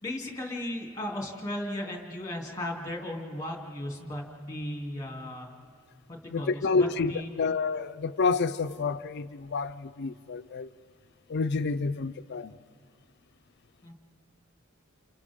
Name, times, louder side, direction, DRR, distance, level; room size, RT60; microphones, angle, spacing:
voice 1, 0.0-5.5 6.1-7.3 13.8-13.9, left 1 dB, 15° left, 2.9 m, -36 dB
voice 2, 6.3-10.7 11.3-12.6, left 4 dB, 55° left, 0.5 m, -29 dB
30.0 x 29.0 x 3.7 m
head